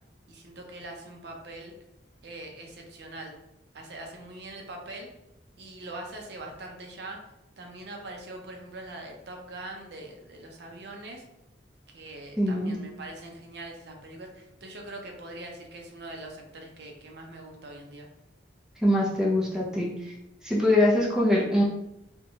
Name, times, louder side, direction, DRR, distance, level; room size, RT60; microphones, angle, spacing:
voice 1, 0.3-1.7 2.2-3.3 3.7-5.1 5.6-7.2 7.6-11.2 11.9-18.1, right 2 dB, 60° right, 2 dB, 0.5 m, -42 dB
voice 2, 12.4-12.7 18.8-20.1 20.4-21.6, left 1 dB, 5° right, -4 dB, 0.4 m, -23 dB
2.8 x 2.1 x 2.6 m, 0.86 s
head